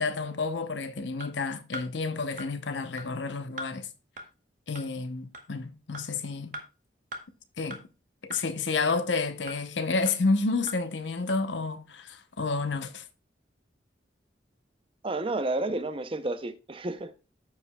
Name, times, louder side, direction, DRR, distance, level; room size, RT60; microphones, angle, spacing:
voice 1, 0.0-3.9 4.7-6.6 7.6-7.8 8.2-13.0, left 3 dB, 85° left, 0.8 m, -30 dB
sound 1, 1.2-1.3 1.7-1.9 2.4-2.5 3.0-3.1 3.6-3.7 4.2-4.3 4.8-4.9 5.3-5.5 5.9-6.1 6.5-6.6 7.1-7.2 7.7-7.8 8.3-8.4 8.9-9.0 9.5-9.6 10.1-10.2 10.7-10.8 11.3-11.4, right 1 dB, 45° right, 1.1 m, -39 dB
voice 2, 15.0-17.2, right 2 dB, 30° right, 0.5 m, -31 dB
14.0 x 4.9 x 2.2 m
head